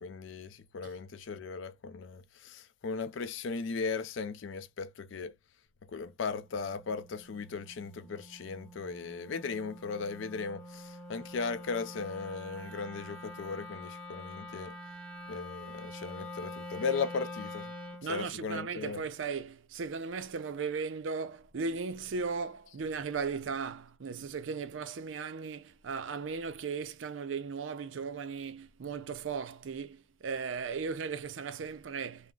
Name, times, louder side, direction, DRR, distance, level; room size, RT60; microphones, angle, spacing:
voice 1, 0.0-5.3 5.9-14.7 15.3-17.7 18.1-19.0, left 5 dB, 85° left, 0.4 m, -37 dB
Wind instrument woodwind instrument, 6.5-18.1, left 1 dB, 10° left, 0.9 m, -46 dB
voice 2, 18.0-32.3, right 5 dB, 90° right, 0.5 m, -37 dB
3.7 x 2.1 x 2.2 m
head